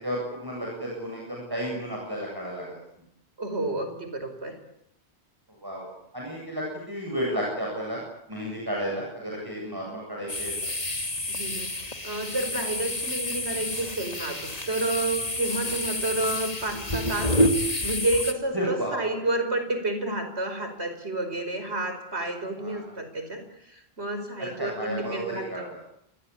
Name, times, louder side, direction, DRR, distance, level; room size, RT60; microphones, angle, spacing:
voice 1, 0.0-2.7 5.6-5.9 6.1-8.0 8.3-10.5 18.5-19.0 22.6-22.8 24.6-25.6, equal, 20° right, -2 dB, 8.1 m, -32 dB
voice 2, 3.4-4.6 11.3-17.4 17.8-25.7, right 2 dB, 75° right, 8 dB, 5.4 m, -30 dB
sound 1, 10.3-18.3, left 1 dB, 35° left, 2.4 m, -29 dB
28.5 x 22.0 x 8.7 m, 0.75 s
omnidirectional pair, 1.1 m